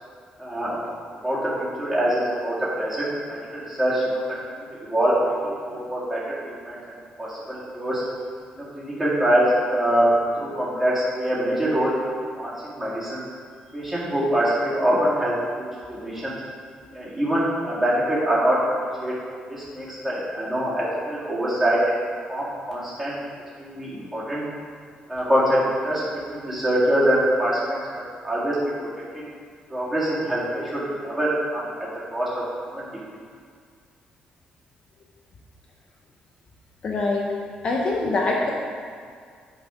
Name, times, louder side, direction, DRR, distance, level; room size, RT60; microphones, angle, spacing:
voice 1, 0.4-0.8 1.2-6.2 6.7-6.8 7.2-8.0 8.7-9.4 9.7-10.1 10.4-11.9 12.4-13.2 13.7-16.3 16.9-18.6 19.0-19.1 19.5-21.9 22.3-23.2 23.6-24.4 25.1-26.0 26.3-27.8 28.2-28.6 29.7-32.3 32.7-32.9, right 1 dB, 10° right, -9 dB, 2.2 m, -24 dB
voice 2, 36.8-37.3 37.6-38.5, left 2 dB, 35° left, -1 dB, 0.7 m, -23 dB
10.0 x 4.2 x 4.9 m, 2.1 s
cardioid pair, 165°, 3 cm